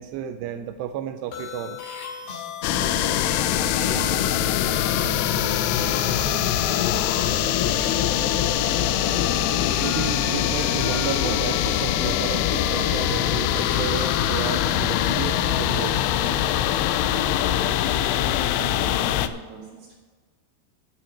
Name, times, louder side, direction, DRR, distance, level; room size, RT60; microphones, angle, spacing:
voice 1, 0.0-1.8 9.5-16.0, right 10 dB, 85° right, 7 dB, 2.4 m, -32 dB
sound 1, 1.3-17.5, left 5 dB, 65° left, 3.9 m, -36 dB
sound 2, 2.6-19.3, left 11 dB, 85° left, 2.4 m, -23 dB
voice 2, 3.2-8.0 17.1-20.0, right 5 dB, 55° right, -6 dB, 3.4 m, -40 dB
9.5 x 6.0 x 8.3 m, 1.4 s
omnidirectional pair, 5.3 m